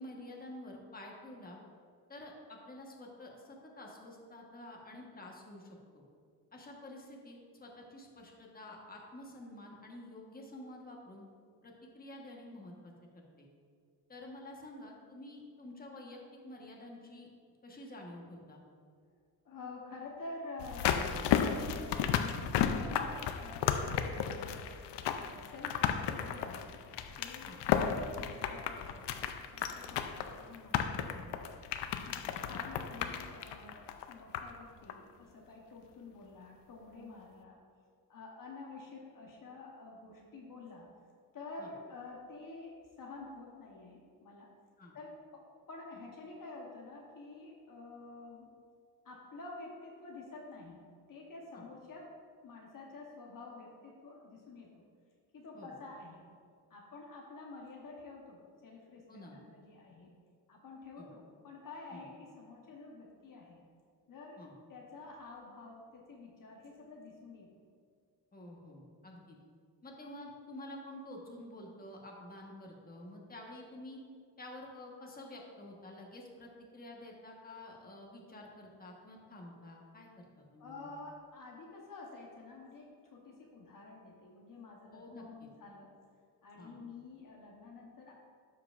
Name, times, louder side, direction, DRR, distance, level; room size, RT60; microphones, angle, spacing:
voice 1, 0.0-1.6 2.1-6.0 6.5-11.3 11.6-13.5 14.1-17.3 17.6-18.6 27.4-27.6 32.2-32.5 41.6-41.7 44.8-44.9 51.5-51.7 55.5-55.7 59.1-59.4 61.0-61.1 61.9-62.0 64.4-64.5 68.3-69.4 69.8-74.0 74.4-80.9 84.9-85.2 86.6-86.7, left 1 dB, 20° left, -1 dB, 1.3 m, -49 dB
voice 2, 19.4-21.1 21.6-24.6 25.2-26.8 27.2-29.1 29.5-31.4 32.0-37.6 38.1-40.9 41.3-44.5 44.9-48.5 49.0-54.8 55.3-56.3 56.7-60.1 60.5-63.6 64.1-64.4 64.7-67.5 80.6-85.9 86.4-88.1, left 3 dB, 50° left, -1 dB, 1.1 m, -49 dB
sound 1, 20.6-34.6 34.9-35.0, left 8 dB, 85° left, 0.6 m, -34 dB
12.5 x 4.6 x 2.5 m, 2.1 s
cardioid pair, 90°, 40 cm